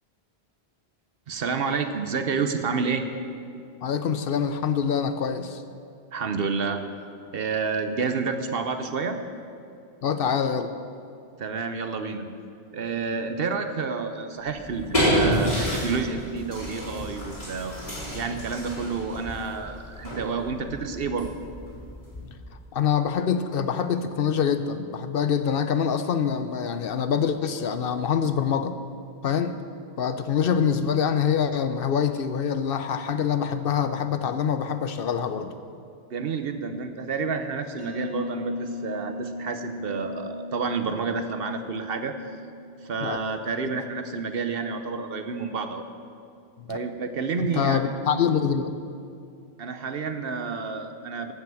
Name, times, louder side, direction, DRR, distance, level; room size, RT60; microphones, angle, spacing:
voice 1, 1.3-3.0 6.1-6.8 7.3-9.2 11.4-12.3 12.7-21.3 36.1-42.2 42.8-45.8 46.7-47.9 49.6-51.3, right 5 dB, 60° right, 8 dB, 1.0 m, -29 dB
voice 2, 3.8-5.6 10.0-10.7 22.7-28.8 29.2-29.6 30.0-35.5 43.0-43.2 46.6-46.8 47.4-48.7, left 7 dB, 65° left, 10 dB, 0.7 m, -25 dB
sound 1, 14.5-22.6, equal, 40° left, 3.6 m, -29 dB
sound 2, 37.8-43.3, left 2 dB, 15° left, 2.6 m, -38 dB
15.0 x 5.8 x 7.7 m, 2.4 s
omnidirectional pair, 1.1 m